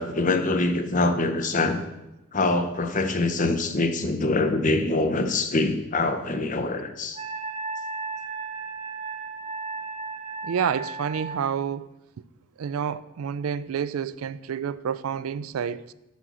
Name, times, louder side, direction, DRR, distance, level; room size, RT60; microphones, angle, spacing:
voice 1, 0.0-1.8 2.3-7.2, left 2 dB, 35° left, 0.7 m, -24 dB
Wind instrument woodwind instrument, 7.2-11.4, right 3 dB, 30° right, 0.9 m, -34 dB
voice 2, 10.4-11.9 12.6-15.9, right 7 dB, 75° right, 0.4 m, -29 dB
6.2 x 6.1 x 7.0 m
head